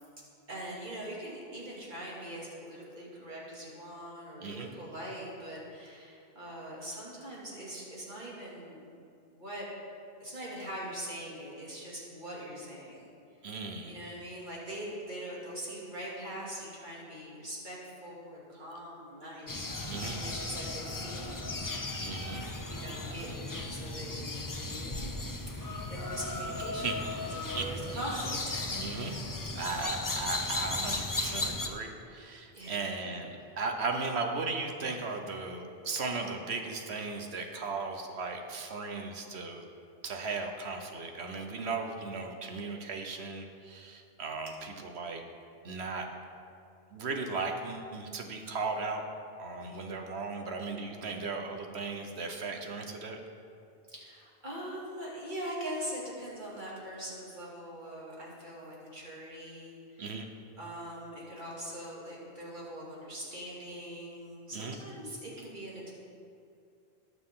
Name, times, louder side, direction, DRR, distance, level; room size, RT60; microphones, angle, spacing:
voice 1, 0.5-8.8 9.3-9.7 10.2-13.1 13.8-21.7 22.7-25.2 25.5-28.9 32.5-32.7 33.0-33.1 49.6-49.8 53.9-60.1 60.6-65.9, right 1 dB, 50° right, -5 dB, 2.7 m, -42 dB
voice 2, 13.4-14.0 19.9-20.2 22.0-22.4 26.6-27.0 27.4-27.6 28.7-29.1 29.5-39.6 40.0-45.2 45.6-46.1 46.9-49.1 49.4-53.2 60.0-60.3 64.5-64.8, right 4 dB, 85° right, 4 dB, 1.3 m, -36 dB
sound 1, 19.5-31.7, left 2 dB, 25° left, 0.6 m, -36 dB
18.5 x 6.8 x 3.8 m, 2.5 s
omnidirectional pair, 1.1 m